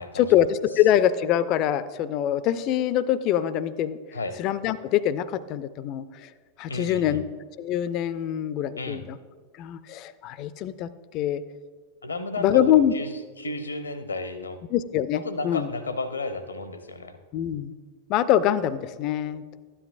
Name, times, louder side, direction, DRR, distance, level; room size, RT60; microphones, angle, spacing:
voice 1, 0.1-4.0 4.4-6.3 6.6-7.2 7.6-9.2 9.6-11.4 12.4-12.9 14.7-15.7 17.3-17.8 18.1-19.4, left 11 dB, 40° left, 16 dB, 0.4 m, -24 dB
voice 2, 6.7-7.2 8.8-9.0 12.0-14.6 15.1-17.2, left 2 dB, 75° left, 10 dB, 0.7 m, -33 dB
12.5 x 9.9 x 2.5 m, 1.5 s
figure-of-eight pair, 90°, 0 cm